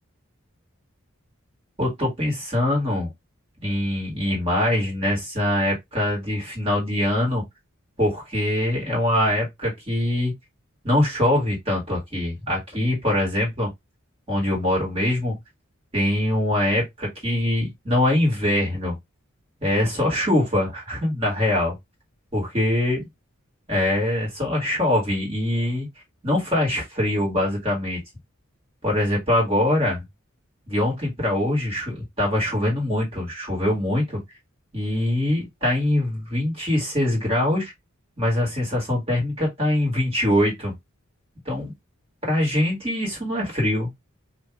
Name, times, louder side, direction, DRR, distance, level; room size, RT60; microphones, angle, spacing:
voice 1, 1.8-3.1 3.6-7.4 8.0-10.3 10.8-13.7 14.3-15.4 15.9-19.0 19.6-21.8 22.3-23.0 23.7-25.9 26.2-28.0 28.8-30.0 30.7-34.2 34.7-37.7 38.2-40.7 41.5-41.7 42.3-43.9, left 1 dB, 25° right, 1.9 m, -23 dB
2.8 x 2.7 x 3.5 m
head